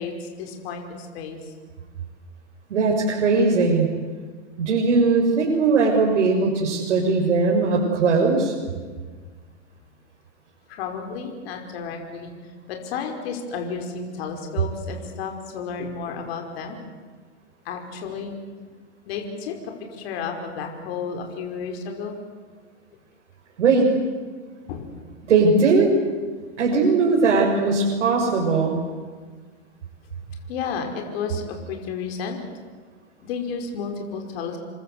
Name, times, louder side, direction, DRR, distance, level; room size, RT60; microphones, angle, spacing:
voice 1, 0.0-1.5 10.7-16.8 17.7-18.3 19.1-22.2 24.7-24.9 30.5-32.4 33.2-34.6, left 5 dB, 55° left, 3 dB, 5.3 m, -32 dB
voice 2, 2.7-3.9 4.6-8.5 23.6-23.9 25.3-25.9 26.6-28.8, right 4 dB, 80° right, -1 dB, 6.2 m, -19 dB
29.0 x 24.5 x 8.2 m, 1.5 s
hypercardioid pair, 140°, 36 cm